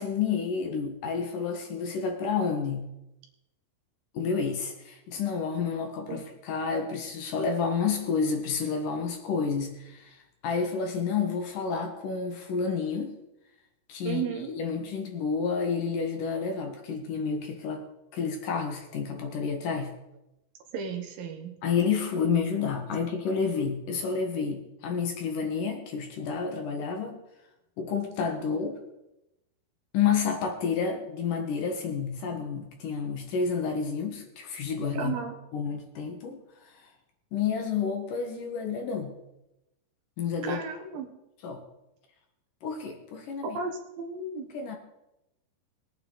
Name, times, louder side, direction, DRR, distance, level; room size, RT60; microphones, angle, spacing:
voice 1, 0.0-2.9 4.1-13.2 13.9-17.9 18.1-19.9 21.6-27.2 27.8-28.8 29.9-35.2 35.5-36.4 36.6-36.9 37.3-39.1 40.2-40.6 41.4-41.6 42.6-43.6 44.5-44.8, left 5 dB, 65° left, 3 dB, 2.8 m, -30 dB
voice 2, 14.0-14.5 20.7-21.6 34.9-35.4 40.4-41.1 43.5-44.5, right 5 dB, 70° right, 4 dB, 2.9 m, -34 dB
21.0 x 9.1 x 4.0 m, 0.90 s
omnidirectional pair, 4.5 m